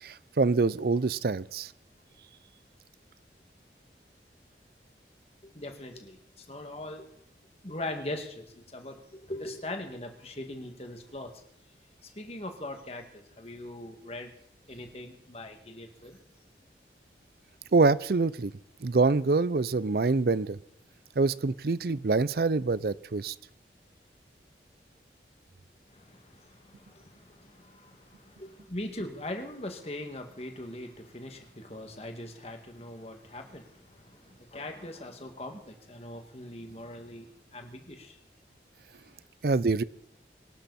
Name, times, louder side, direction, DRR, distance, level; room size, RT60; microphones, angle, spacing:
voice 1, 0.0-1.7 17.7-18.5 18.8-20.6 21.2-23.3 39.4-39.8, right 3 dB, 60° right, 19 dB, 0.5 m, -25 dB
voice 2, 5.4-7.1 7.6-11.3 12.0-14.3 14.7-16.2 22.7-22.8 25.9-38.2, left 1 dB, 35° left, 4 dB, 2.1 m, -41 dB
23.5 x 12.0 x 4.3 m, 0.69 s
head